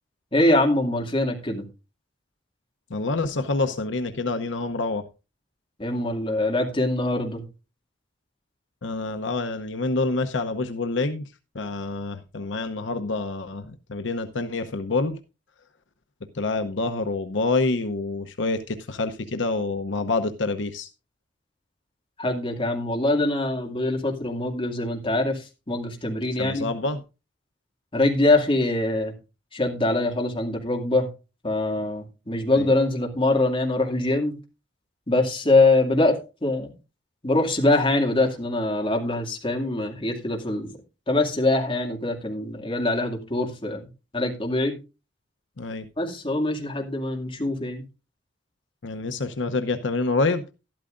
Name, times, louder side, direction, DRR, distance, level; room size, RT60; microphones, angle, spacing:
voice 1, 0.3-1.7 5.8-7.4 22.2-26.7 27.9-29.1 29.5-31.1 31.4-34.4 35.1-36.7 37.2-40.7 41.1-43.9 44.1-44.8 46.0-47.8, left 2 dB, 30° left, 2.3 m, -23 dB
voice 2, 2.9-5.1 8.8-11.3 11.5-15.2 16.3-20.9 26.4-27.0 32.6-32.7 45.6-45.9 48.8-50.4, left 3 dB, 80° left, 0.8 m, -27 dB
12.0 x 12.0 x 2.5 m
head